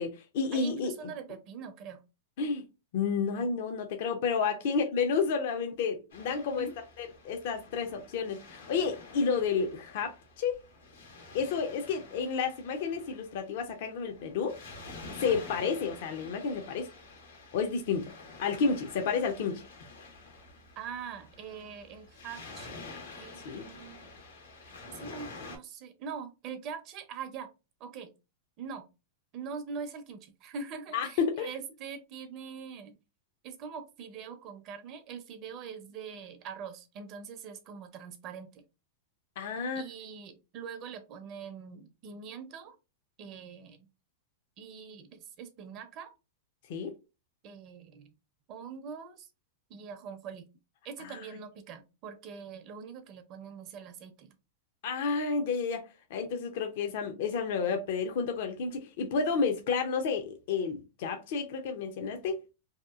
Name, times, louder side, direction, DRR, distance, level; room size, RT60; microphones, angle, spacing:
voice 1, 0.0-0.9 2.4-2.6 2.9-6.7 7.0-10.6 11.3-14.6 15.2-16.9 17.5-18.1 18.4-19.6 23.4-23.7 30.9-31.5 39.4-39.9 46.7-46.9 51.1-51.2 54.8-62.5, left 5 dB, 60° left, 0.5 m, -31 dB
voice 2, 0.5-2.0 4.6-4.7 6.6-6.7 15.2-15.3 20.8-24.0 24.9-27.5 27.8-28.1 28.6-28.9 29.3-33.0 33.4-38.6 39.8-42.7 43.2-43.9 44.6-46.1 47.4-48.1 48.5-49.3 49.7-50.4 50.8-54.4, right 6 dB, 40° right, 0.5 m, -43 dB
Waves surf, 6.1-25.6, left 3 dB, 90° left, 1.0 m, -49 dB
2.8 x 2.3 x 2.3 m
hypercardioid pair, 130°, 0 cm